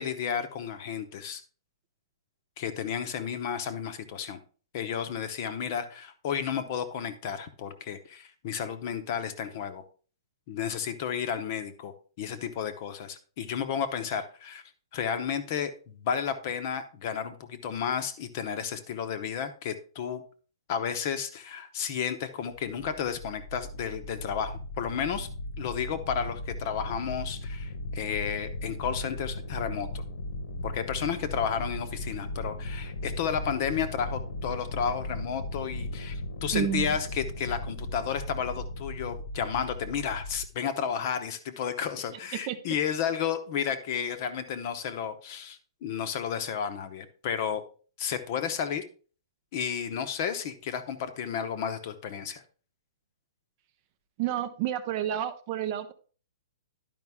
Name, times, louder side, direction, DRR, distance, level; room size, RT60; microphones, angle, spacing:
voice 1, 0.0-1.4 2.6-4.4 4.7-9.8 10.5-14.6 14.9-20.2 20.7-25.3 25.6-29.9 30.6-47.6 48.0-48.8 49.5-52.4, left 7 dB, 35° left, 10 dB, 0.8 m, -32 dB
sound 1, 22.8-40.5, left 2 dB, 60° left, 1.2 m, -37 dB
voice 2, 36.5-37.0 42.5-42.6 54.2-55.9, right 11 dB, 30° right, 10 dB, 0.5 m, -30 dB
11.0 x 5.2 x 3.5 m, 0.39 s
hypercardioid pair, 170°, 3 cm